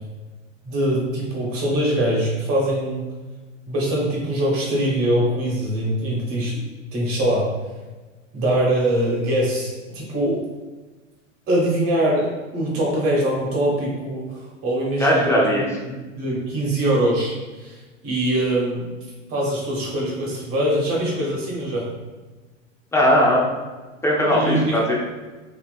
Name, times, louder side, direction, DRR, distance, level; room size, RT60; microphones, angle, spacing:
voice 1, 0.6-3.0 3.7-6.5 6.9-7.5 8.3-10.4 11.5-15.7 16.2-17.8 18.0-18.8 19.3-21.8 24.3-24.7, right 1 dB, 35° right, -3 dB, 1.2 m, -23 dB
voice 2, 15.0-15.7 22.9-23.4 24.0-24.9, equal, 5° left, -4 dB, 0.5 m, -18 dB
2.9 x 2.9 x 2.4 m, 1.3 s
hypercardioid pair, 105°, 38 cm